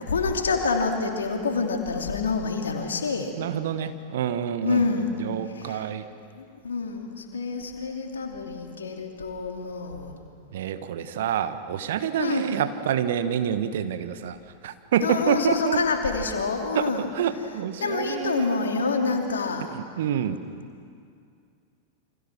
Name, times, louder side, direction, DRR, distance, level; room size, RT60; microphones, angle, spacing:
voice 1, 0.0-3.3 4.6-5.2 5.5-5.9 6.3-10.1 12.2-12.5 15.0-17.1 17.8-19.7, left 4 dB, 70° left, 3 dB, 3.0 m, -27 dB
voice 2, 3.3-4.9 5.2-6.1 10.5-14.4 14.6-15.8 16.7-19.2 19.7-20.4, right 9 dB, 55° right, 10 dB, 1.4 m, -27 dB
28.5 x 26.0 x 6.2 m, 2.3 s
figure-of-eight pair, 90°, 0 cm